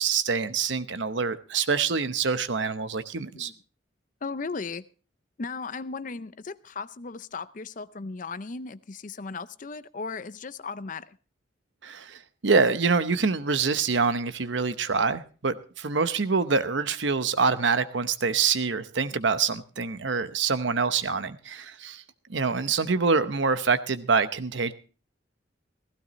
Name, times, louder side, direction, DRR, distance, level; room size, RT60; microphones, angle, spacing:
voice 1, 0.0-3.5 11.8-22.0 22.3-24.7, right 5 dB, 70° right, 12 dB, 0.9 m, -25 dB
voice 2, 4.2-4.8 5.4-11.2, left 4 dB, 45° left, 15 dB, 0.5 m, -36 dB
16.0 x 15.5 x 3.1 m, 0.37 s
head